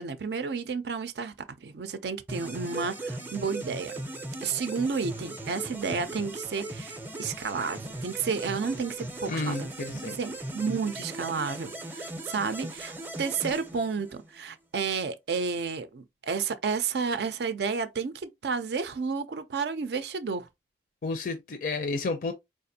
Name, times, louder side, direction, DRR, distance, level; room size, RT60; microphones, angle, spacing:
voice 1, 0.0-1.3 1.6-3.9 4.4-9.7 10.2-20.5, right 5 dB, 70° right, 0.5 m, -31 dB
sound 1, 2.3-14.4, right 2 dB, 10° right, 0.6 m, -38 dB
voice 2, 9.3-10.2 21.0-22.3, left 3 dB, 50° left, 0.4 m, -31 dB
4.6 x 2.5 x 2.7 m
head